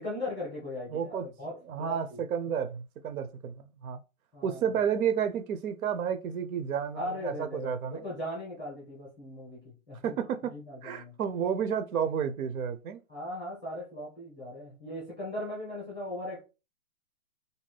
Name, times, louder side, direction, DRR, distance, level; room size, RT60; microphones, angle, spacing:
voice 1, 0.0-2.2 4.3-4.7 7.0-10.2 10.5-11.2 13.1-16.4, left 1 dB, 5° left, 0.5 m, -38 dB
voice 2, 0.9-1.3 1.7-4.0 4.4-8.0 10.0-10.5 10.8-13.0, right 8 dB, 80° right, 0.6 m, -31 dB
2.7 x 2.1 x 3.2 m
hypercardioid pair, 160°, 42 cm